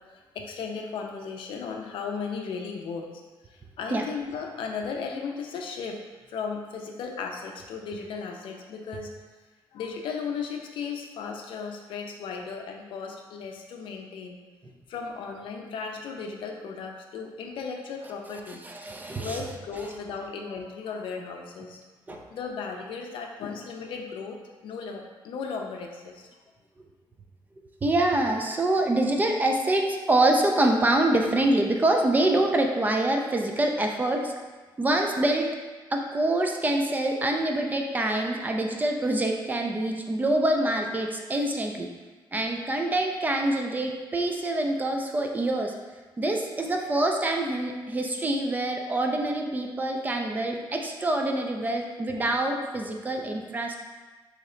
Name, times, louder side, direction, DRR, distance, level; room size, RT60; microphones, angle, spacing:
voice 1, 0.1-3.1 3.5-6.0 6.3-9.1 9.7-14.4 14.9-18.6 19.2-21.8 22.1-24.4 24.6-26.3, left 5 dB, 70° left, 2 dB, 0.5 m, -36 dB
voice 2, 18.6-19.4 22.1-22.2 27.8-34.3 34.8-35.5 35.9-41.9 42.3-45.7 46.2-53.7, right 1 dB, 20° right, 2 dB, 0.3 m, -25 dB
3.1 x 2.8 x 3.7 m, 1.3 s
cardioid pair, 135°, 9 cm